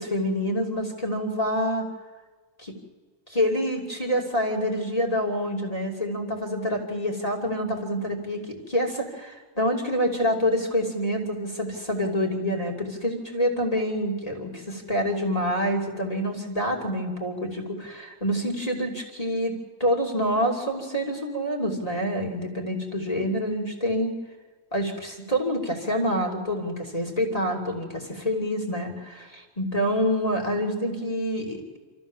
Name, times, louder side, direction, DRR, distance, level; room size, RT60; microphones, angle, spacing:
voice 1, 0.0-1.9 2.6-2.7 3.3-19.5 19.8-24.1 24.7-31.6, equal, 10° left, 0 dB, 2.5 m, -27 dB
27.5 x 14.0 x 7.3 m, 1.4 s
omnidirectional pair, 3.5 m